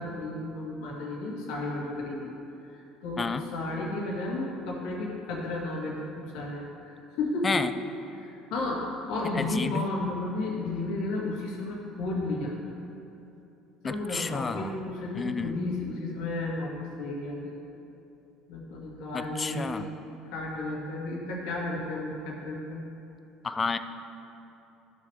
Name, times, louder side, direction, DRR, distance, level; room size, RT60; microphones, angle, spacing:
voice 1, 0.0-2.3 2.7-3.2 3.5-7.6 8.1-8.8 9.1-12.6 13.8-17.6 18.5-19.9 20.3-22.8, left 2 dB, 75° left, -3 dB, 2.0 m, -33 dB
voice 2, 9.3-9.9 13.8-14.7 15.1-15.6 19.1-19.9 23.4-23.8, left 4 dB, 25° left, 11 dB, 0.5 m, -30 dB
15.0 x 6.6 x 3.5 m, 2.9 s
supercardioid pair, 80°, 0 cm